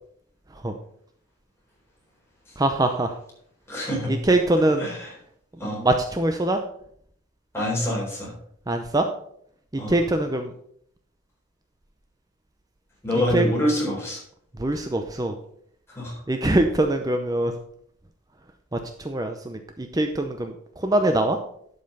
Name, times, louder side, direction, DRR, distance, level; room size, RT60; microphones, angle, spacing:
voice 1, 2.6-3.2 4.1-4.9 5.6-6.6 8.7-9.1 9.7-10.5 13.3-13.5 14.6-15.4 16.3-17.5 18.7-21.4, right 1 dB, 15° right, 5 dB, 0.6 m, -23 dB
voice 2, 3.7-4.1 4.8-5.1 5.6-5.8 7.5-8.3 9.8-10.0 13.0-14.2 15.9-16.2, left 1 dB, 10° left, -4 dB, 4.0 m, -26 dB
11.5 x 5.4 x 5.5 m, 0.66 s
head